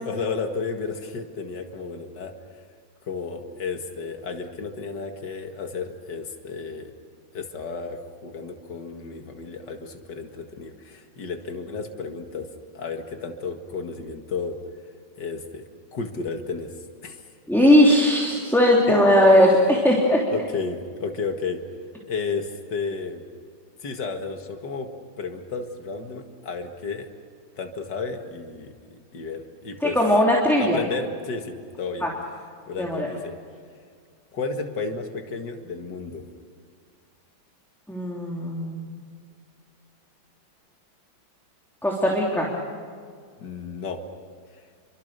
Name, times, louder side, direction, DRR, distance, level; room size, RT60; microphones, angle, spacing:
voice 1, 0.0-2.3 3.1-6.9 7.3-12.5 12.7-14.6 15.2-15.6 15.9-16.7 17.0-17.3 17.6-17.7 18.8-18.9 20.3-21.6 22.0-23.2 23.8-24.9 25.2-27.1 27.6-30.0 30.6-32.1 32.7-33.4 34.3-36.2 43.4-44.0, left 4 dB, 70° left, 5 dB, 2.5 m, -32 dB
voice 2, 17.5-20.2 29.8-30.8 32.0-32.1 32.8-33.1 37.9-38.8 41.8-42.5, left 1 dB, ahead, -3 dB, 3.0 m, -18 dB
28.5 x 24.5 x 6.8 m, 2.1 s
omnidirectional pair, 2.0 m